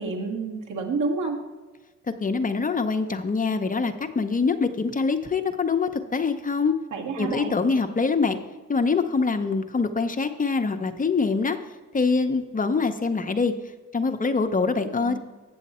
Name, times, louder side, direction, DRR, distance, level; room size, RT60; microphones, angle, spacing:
voice 1, 0.0-1.4 6.9-7.5 15.0-15.2, right 4 dB, 65° right, 0 dB, 1.8 m, -29 dB
voice 2, 2.2-6.8 7.2-8.4 8.7-11.6 11.9-13.5 13.9-15.2, left 4 dB, 25° left, 7 dB, 0.7 m, -24 dB
8.5 x 7.1 x 4.2 m, 1.3 s
supercardioid pair, 70°, 33 cm